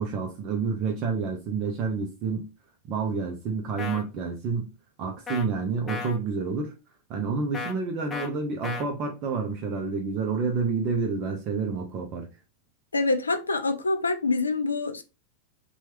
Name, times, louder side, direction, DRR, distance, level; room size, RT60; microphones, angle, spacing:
voice 1, 0.0-2.5 2.9-4.7 5.0-6.7 7.1-12.3, right 5 dB, 40° right, 0.6 m, -29 dB
sound 1, 3.8-4.0 5.3-5.5 5.9-6.2 7.5-7.7 8.1-8.3 8.6-8.9, left 5 dB, 20° left, 0.5 m, -34 dB
voice 2, 12.9-15.0, left 3 dB, 75° left, 0.4 m, -26 dB
2.9 x 2.3 x 3.0 m
figure-of-eight pair, 90°, 0 cm